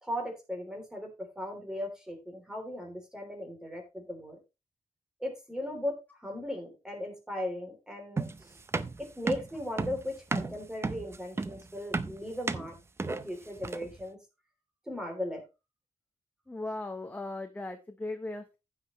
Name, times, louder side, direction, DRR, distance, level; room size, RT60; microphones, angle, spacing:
voice 1, 0.0-4.4 5.2-8.5 9.0-12.7 13.1-14.2 14.9-15.4, left 1 dB, 5° right, 2 dB, 3.1 m, -37 dB
sound 1, 8.2-14.0, right 3 dB, 20° right, 0.5 m, -34 dB
voice 2, 16.5-18.6, left 2 dB, 15° left, 6 dB, 0.8 m, -38 dB
15.0 x 5.7 x 3.1 m, 0.26 s
wide cardioid pair, 155°, 12 cm